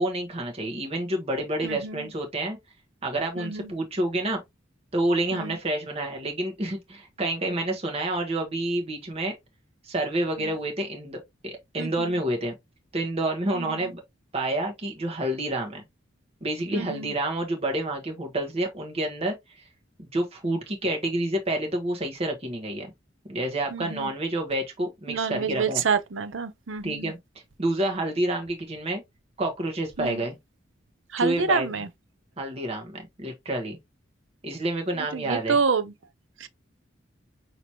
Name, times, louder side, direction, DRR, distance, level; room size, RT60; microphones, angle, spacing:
voice 1, 0.0-2.6 3.0-4.4 4.9-9.3 9.8-12.5 12.9-14.0 14.3-15.8 16.4-19.3 20.0-22.9 23.3-25.8 26.8-27.2 27.6-29.0 29.4-30.4 31.2-31.7 32.4-33.8 34.4-35.6, right 1 dB, 30° right, 1.1 m, -28 dB
voice 2, 1.6-2.1 3.4-3.7 5.3-5.6 10.4-10.5 11.8-12.2 13.5-13.9 16.7-17.1 23.7-24.1 25.1-27.1 30.0-30.2 31.1-31.9 35.0-35.9 36.4-36.5, right 5 dB, 75° right, 0.6 m, -28 dB
5.9 x 2.9 x 2.8 m
head